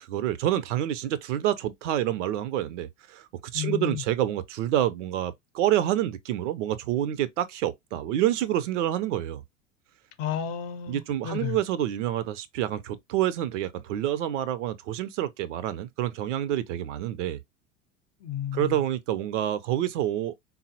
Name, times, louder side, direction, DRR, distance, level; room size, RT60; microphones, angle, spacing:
voice 1, 0.0-3.3 3.5-9.4 10.9-17.4 18.5-20.3, right 12 dB, 65° right, 0.6 m, -28 dB
voice 2, 3.5-4.0 10.2-11.6 18.2-18.8, left 9 dB, 40° left, 0.6 m, -32 dB
3.7 x 2.0 x 2.7 m
hypercardioid pair, 75°, 39 cm